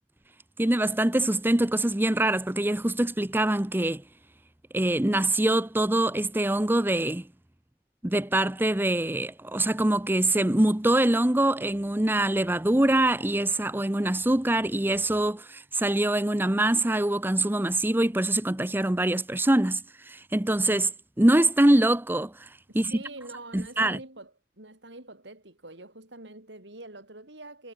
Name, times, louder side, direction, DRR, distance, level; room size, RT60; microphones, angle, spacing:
voice 1, 0.6-4.0 4.7-7.3 8.0-20.9 21.2-22.9 23.5-24.0, right 1 dB, 10° right, 0.8 m, -24 dB
voice 2, 22.7-27.7, right 2 dB, 75° right, 6.3 m, -45 dB
head